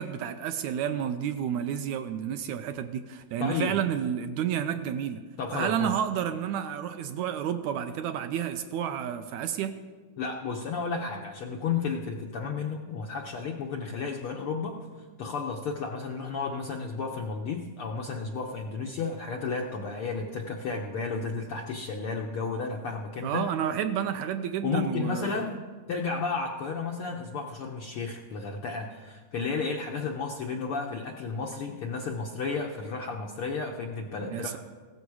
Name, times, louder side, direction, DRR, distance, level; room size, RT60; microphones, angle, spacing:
voice 1, 0.0-5.2 5.5-9.7 23.2-25.6 34.3-34.6, right 9 dB, 80° right, 8 dB, 1.8 m, -30 dB
voice 2, 3.4-3.8 5.4-5.9 10.2-14.7 15.2-23.5 24.6-25.6 25.9-34.5, left 4 dB, 70° left, 1 dB, 1.3 m, -32 dB
16.0 x 13.5 x 4.8 m, 1.5 s
omnidirectional pair, 3.6 m